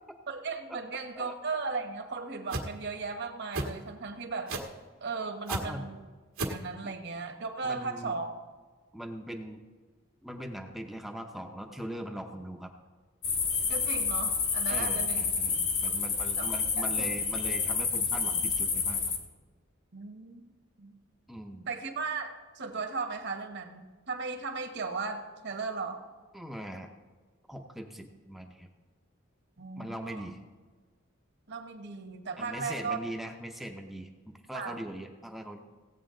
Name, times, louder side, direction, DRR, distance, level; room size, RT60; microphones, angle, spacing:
voice 1, 0.3-4.6 5.0-6.0 6.5-8.3 13.7-15.3 15.9-16.0 16.4-16.5 16.8-17.0 19.9-21.0 21.7-26.0 29.6-30.3 31.5-33.0 34.5-34.8, right 4 dB, 60° right, 6 dB, 1.2 m, -36 dB
sound 1, 2.5-2.7 3.5-3.7 4.5-4.8 5.5-5.6 6.4-6.6, right 2 dB, 85° right, 1.6 m, -31 dB
voice 2, 5.5-5.9 6.8-6.9 7.6-8.2 8.9-9.6 10.2-12.7 14.7-19.1 21.3-21.7 26.3-26.9 27.5-28.7 29.8-30.4 32.4-35.6, equal, ahead, 3 dB, 0.6 m, -41 dB
sound 2, 13.2-19.2, left 5 dB, 75° left, 1.7 m, -29 dB
16.5 x 8.3 x 3.8 m, 1.4 s
head